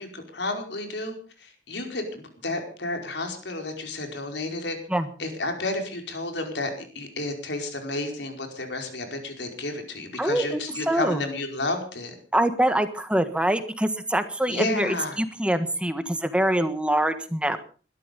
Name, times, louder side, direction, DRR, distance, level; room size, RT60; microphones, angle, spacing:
voice 1, 0.0-4.8 5.2-12.1 14.5-15.2, left 2 dB, 75° left, 4 dB, 4.9 m, -31 dB
voice 2, 10.2-11.2 12.3-17.6, right 1 dB, 5° right, 10 dB, 1.4 m, -24 dB
20.5 x 13.0 x 5.3 m, 0.39 s
head